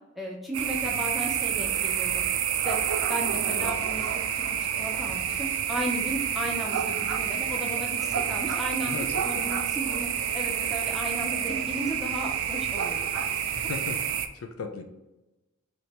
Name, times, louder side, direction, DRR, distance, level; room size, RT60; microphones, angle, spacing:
voice 1, 0.2-2.2 2.6-2.8 3.1-4.1 4.3-4.4 4.8-10.1 10.3-13.3, right 1 dB, ahead, -3 dB, 0.5 m, -34 dB
sound 1, 0.5-14.3, right 8 dB, 75° right, 0.4 m, -28 dB
voice 2, 8.8-9.6 13.5-14.8, left 4 dB, 75° left, 5 dB, 0.4 m, -37 dB
3.3 x 2.9 x 4.1 m, 1.0 s
head